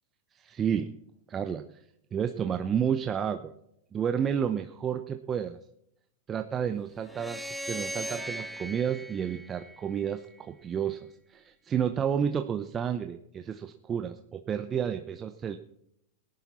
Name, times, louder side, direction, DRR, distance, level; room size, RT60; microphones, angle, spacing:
voice 1, 0.4-0.9 1.3-1.6 2.1-3.5 3.9-5.6 6.3-7.4 7.7-15.6, right 8 dB, 25° right, 7 dB, 0.7 m, -31 dB
sound 1, 7.0-10.3, equal, ahead, 1.0 m, -39 dB
18.5 x 10.5 x 4.2 m, 0.78 s
hypercardioid pair, 100°, 0 cm